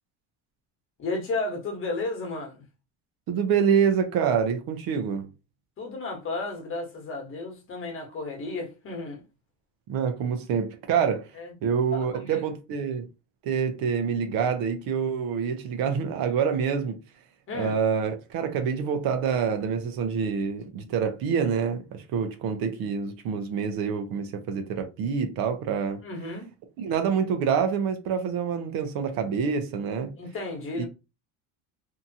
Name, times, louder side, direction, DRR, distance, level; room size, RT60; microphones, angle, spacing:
voice 1, 1.0-2.6 5.8-9.2 11.4-11.5 11.9-12.4 17.5-17.8 26.0-26.5 30.1-30.9, left 3 dB, 30° left, 1.2 m, -33 dB
voice 2, 3.3-5.3 9.9-11.3 11.6-13.1 13.4-17.0 17.5-26.0 26.8-30.1 30.8-30.9, right 7 dB, 60° right, 0.7 m, -26 dB
2.8 x 2.3 x 2.7 m
cardioid pair, 135°, 39 cm